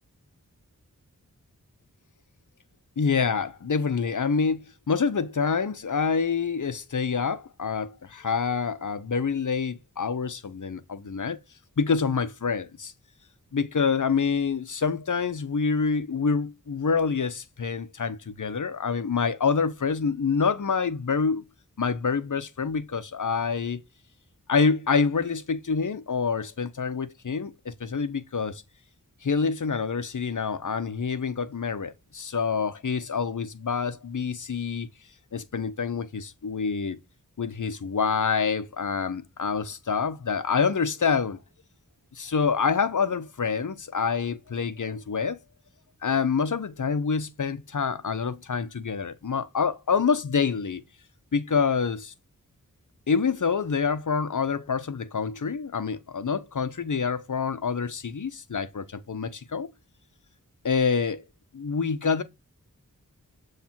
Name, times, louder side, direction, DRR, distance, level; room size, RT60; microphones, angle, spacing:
voice 1, 3.0-11.4 11.8-12.9 13.5-21.5 21.8-23.8 24.5-28.6 29.2-34.9 35.3-37.0 37.4-41.4 42.1-45.4 46.0-50.8 51.3-52.1 53.1-59.7 60.6-61.2 61.5-62.2, left 5 dB, 60° left, 0.8 m, -27 dB
7.2 x 3.3 x 4.4 m
wide cardioid pair, 55°, 34 cm